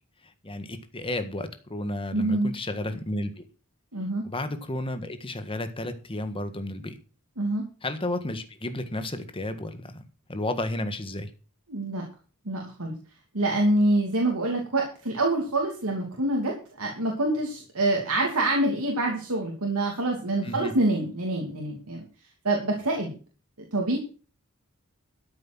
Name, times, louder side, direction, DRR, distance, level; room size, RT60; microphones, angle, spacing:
voice 1, 0.2-3.5 4.2-7.0 7.8-10.0 10.3-11.3 20.4-20.7, left 1 dB, 25° left, 9 dB, 1.6 m, -32 dB
voice 2, 2.1-2.5 3.9-4.3 7.4-7.7 11.7-12.0 12.4-12.9 13.3-22.0 22.4-23.1 23.7-24.0, right 2 dB, 80° right, 0 dB, 2.8 m, -26 dB
13.5 x 7.7 x 6.2 m, 0.37 s
head